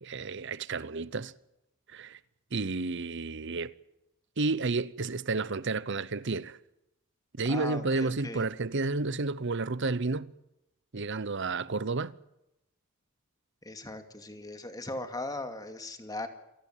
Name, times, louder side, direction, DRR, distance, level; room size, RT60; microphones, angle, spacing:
voice 1, 0.0-1.3 1.9-2.2 2.5-3.7 4.4-6.6 7.4-10.3 10.9-12.1, right 3 dB, 60° right, 0.9 m, -31 dB
voice 2, 7.5-8.4 13.6-16.3, left 2 dB, 20° left, 2.3 m, -38 dB
27.0 x 19.0 x 7.4 m
head